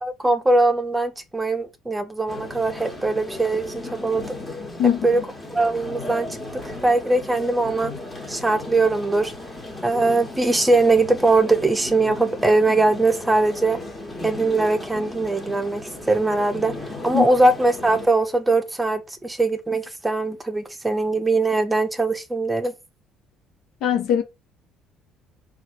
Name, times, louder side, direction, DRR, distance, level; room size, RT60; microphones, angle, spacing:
voice 1, 0.0-4.4 5.0-5.2 5.5-6.3 6.6-7.9 8.3-9.3 9.8-13.8 14.2-16.8 17.0-22.7, right 2 dB, 15° right, 0.9 m, -21 dB
sound 1, 2.3-18.1, left 2 dB, 20° left, 1.7 m, -35 dB
voice 2, 23.8-24.2, left 9 dB, 70° left, 1.0 m, -20 dB
4.0 x 2.6 x 4.3 m
supercardioid pair, 70°, 0 cm